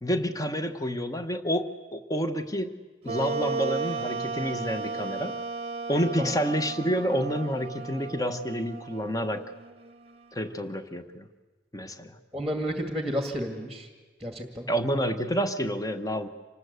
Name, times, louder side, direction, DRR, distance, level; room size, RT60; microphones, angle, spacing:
voice 1, 0.0-2.7 3.0-5.3 5.9-9.4 10.3-11.3 11.7-12.2 14.7-16.3, equal, 20° left, 9 dB, 1.1 m, -29 dB
Wind instrument woodwind instrument, 3.0-10.5, right 4 dB, 30° right, 0.9 m, -35 dB
voice 2, 12.3-13.9 14.2-14.7, equal, ahead, 5 dB, 2.0 m, -31 dB
26.5 x 19.5 x 8.1 m, 1.3 s
head